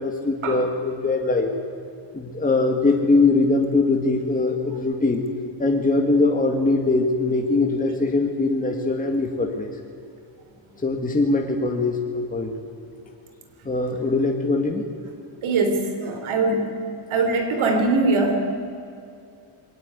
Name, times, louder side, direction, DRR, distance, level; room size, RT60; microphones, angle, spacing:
voice 1, 0.0-1.5 2.1-5.3 5.6-9.7 10.8-12.5 13.7-14.9, left 3 dB, 15° left, 1 dB, 2.0 m, -22 dB
voice 2, 15.4-16.8 17.1-18.6, right 3 dB, 90° right, 5 dB, 3.9 m, -22 dB
22.0 x 18.5 x 9.6 m, 2.5 s
wide cardioid pair, 155°, 47 cm